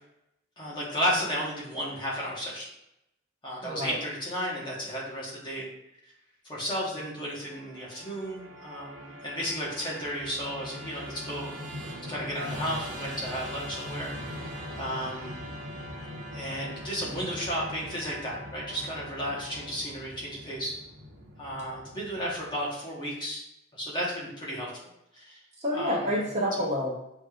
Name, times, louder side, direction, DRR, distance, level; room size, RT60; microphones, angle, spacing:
voice 1, 0.6-2.7 3.4-5.7 6.5-11.6 12.1-14.1 14.8-15.3 16.3-20.8 21.4-23.4 23.7-24.9 25.1-25.4 25.7-26.1 26.6-26.7, equal, 20° left, -5 dB, 1.2 m, -33 dB
voice 2, 3.6-4.0 25.6-27.0, equal, 35° right, -3 dB, 0.8 m, -28 dB
Musical instrument, 7.4-22.7, equal, 70° right, 1.2 m, -41 dB
6.2 x 3.3 x 2.4 m, 0.81 s
head